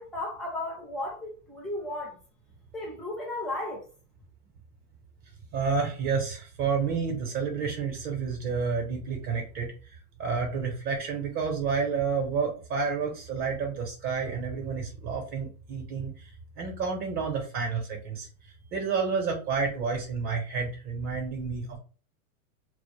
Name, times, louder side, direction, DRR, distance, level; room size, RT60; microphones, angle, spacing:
voice 1, 0.0-2.2 2.7-3.8, left 1 dB, ahead, 0.5 m, -34 dB
voice 2, 5.5-9.7 10.2-16.3 16.6-18.3 18.7-21.8, right 5 dB, 35° right, 0.7 m, -30 dB
2.2 x 2.1 x 3.1 m
hypercardioid pair, 130°, 44 cm